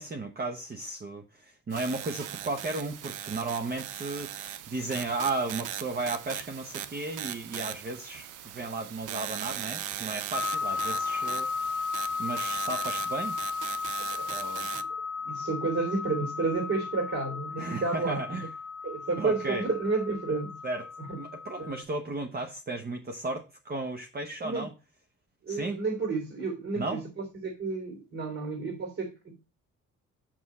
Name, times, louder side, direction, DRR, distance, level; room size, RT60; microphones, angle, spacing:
voice 1, 0.0-11.7 12.2-13.4 14.3-14.7 17.6-18.5 19.2-19.6 20.6-20.9 21.1-24.7 25.5-25.8 26.8-27.0, right 3 dB, 30° right, 1.0 m, -34 dB
sound 1, 1.7-14.8, right 11 dB, 80° right, 0.7 m, -39 dB
sound 2, 10.3-21.8, left 5 dB, ahead, 1.4 m, -35 dB
voice 2, 14.0-14.3 14.7-14.8 15.2-18.5 18.8-20.6 21.1-21.2 21.6-21.8 24.4-24.7 25.4-29.3, right 3 dB, 50° right, 3.1 m, -31 dB
6.3 x 6.2 x 4.2 m
cardioid pair, 90°, 30 cm